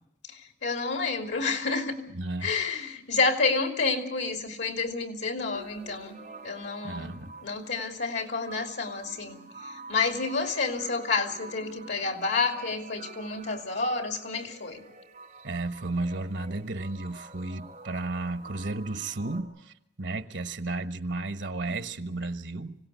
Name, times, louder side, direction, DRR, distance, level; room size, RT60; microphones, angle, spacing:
voice 1, 0.3-2.0 2.4-6.2 6.4-7.1 7.4-14.8, left 4 dB, 85° left, 3.1 m, -29 dB
voice 2, 2.1-2.5 6.8-7.3 15.4-22.7, right 2 dB, 90° right, 1.3 m, -33 dB
sound 1, 5.5-19.4, right 3 dB, 40° right, 5.6 m, -48 dB
25.5 x 17.0 x 8.2 m
head